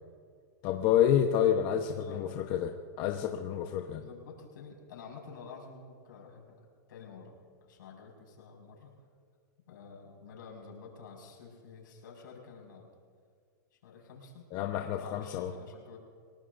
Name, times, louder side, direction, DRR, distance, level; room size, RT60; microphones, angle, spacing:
voice 1, 0.6-4.0 14.5-15.5, left 9 dB, 45° left, 3 dB, 1.1 m, -28 dB
voice 2, 1.7-2.2 3.9-6.4 6.9-8.9 9.7-12.9 13.7-14.5 14.8-16.0, left 5 dB, 80° left, -1 dB, 5.7 m, -50 dB
29.0 x 18.5 x 2.7 m, 2.1 s
hypercardioid pair, 135°, 11 cm